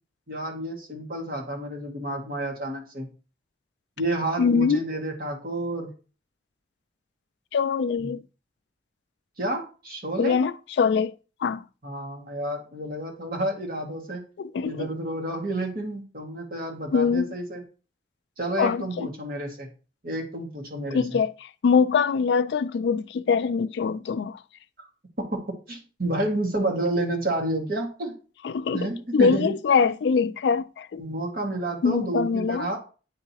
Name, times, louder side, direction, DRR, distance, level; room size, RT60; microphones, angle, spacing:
voice 1, 0.3-3.1 4.0-5.9 8.0-8.1 9.4-10.4 11.8-14.2 14.6-17.6 18.4-19.7 20.0-21.2 25.3-28.1 28.7-29.5 31.0-32.8, right 1 dB, 55° right, 1.9 m, -30 dB
voice 2, 4.4-4.8 7.5-8.2 10.2-11.1 11.4-11.6 14.4-14.9 16.9-17.3 18.6-19.1 20.9-24.4 28.4-31.0 31.8-32.7, left 5 dB, 70° left, 0.3 m, -23 dB
9.8 x 3.8 x 2.9 m
head